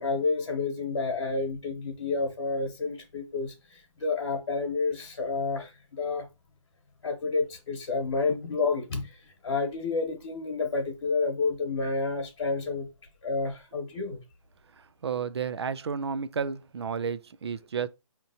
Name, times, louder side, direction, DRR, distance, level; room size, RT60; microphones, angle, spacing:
voice 1, 0.0-6.3 7.0-12.9 13.2-14.2, left 3 dB, 45° left, 1.2 m, -30 dB
voice 2, 15.0-17.9, right 6 dB, 50° right, 0.4 m, -31 dB
4.9 x 2.9 x 2.7 m
hypercardioid pair, 165°, 17 cm